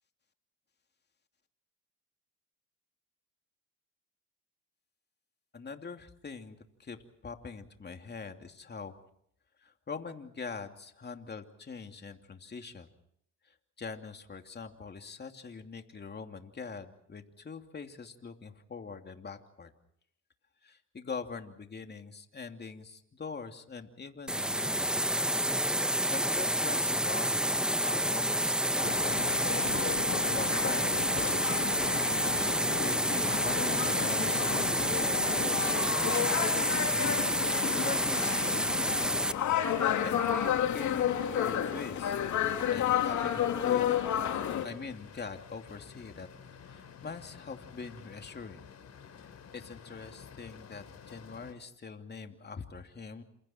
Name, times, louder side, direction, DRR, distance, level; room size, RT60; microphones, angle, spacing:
voice 1, 5.5-7.0 7.2-8.9 9.6-12.9 13.5-19.7 20.6-25.0 26.1-29.0 29.9-31.7 32.8-35.7 36.0-37.5 37.7-39.0 39.2-43.9 44.6-46.3 46.6-48.7 49.2-53.2, left 5 dB, 35° left, 6 dB, 2.8 m, -43 dB
sound 1, 24.3-39.3, right 1 dB, 5° right, 0.9 m, -29 dB
sound 2, 28.8-44.7, left 10 dB, 75° left, 2.9 m, -32 dB
sound 3, 31.9-51.5, left 7 dB, 55° left, 4.3 m, -53 dB
29.0 x 27.0 x 4.5 m, 0.70 s
cardioid pair, 90°, 30 cm